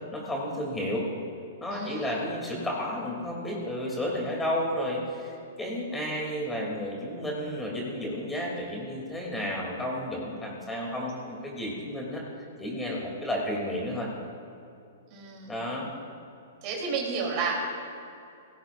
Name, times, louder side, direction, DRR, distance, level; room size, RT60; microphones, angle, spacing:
voice 1, 0.1-1.1 1.6-12.2 12.6-14.1 15.5-15.9, left 1 dB, 10° left, -3 dB, 2.9 m, -32 dB
voice 2, 1.7-2.1 15.1-15.5 16.6-17.6, right 5 dB, 45° right, -1 dB, 3.4 m, -31 dB
17.5 x 15.5 x 2.6 m, 2.6 s
hypercardioid pair, 125°, 0 cm